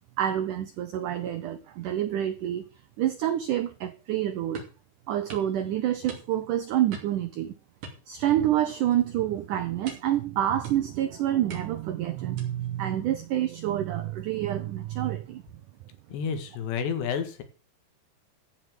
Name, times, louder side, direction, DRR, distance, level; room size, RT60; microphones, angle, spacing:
voice 1, 0.2-2.7 3.0-4.6 5.1-7.5 8.1-15.4, right 12 dB, 85° right, 1.8 m, -27 dB
sound 1, 4.5-4.8 5.3-5.5 6.1-6.5 6.9-7.3 7.8-8.6 8.9-9.2 9.9-10.2 10.6-11.0 11.5-11.9 12.4-12.7, right 3 dB, 50° right, 4.0 m, -43 dB
voice 2, 16.1-17.4, left 7 dB, 80° left, 4.0 m, -30 dB
14.5 x 5.7 x 7.8 m
omnidirectional pair, 4.9 m